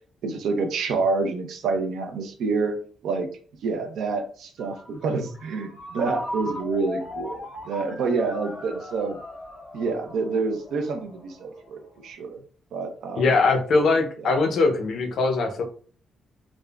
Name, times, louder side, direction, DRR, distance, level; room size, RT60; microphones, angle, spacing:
voice 1, 0.2-2.8 3.0-3.3 3.6-9.2 9.7-12.4 12.7-13.2 14.2-14.3, right 4 dB, 75° right, 6 dB, 0.6 m, -27 dB
Ringtone, 4.6-12.1, left 1 dB, 15° left, 1.4 m, -39 dB
voice 2, 13.2-15.6, left 3 dB, 60° left, 5 dB, 0.6 m, -21 dB
3.5 x 2.0 x 2.3 m, 0.44 s
cardioid pair, 120°, 0 cm